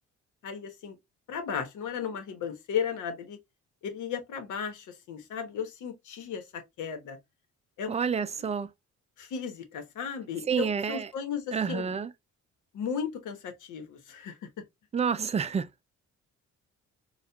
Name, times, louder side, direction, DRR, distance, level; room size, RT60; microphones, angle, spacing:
voice 1, 0.4-1.0 1.3-3.4 3.8-7.2 7.8-8.0 9.2-12.0 12.7-14.4, left 7 dB, 80° left, 1.1 m, -35 dB
voice 2, 7.9-8.7 10.5-11.1 11.5-12.1 14.9-15.9, right 6 dB, 20° right, 0.4 m, -29 dB
4.2 x 2.4 x 2.3 m
cardioid pair, 90°, 30 cm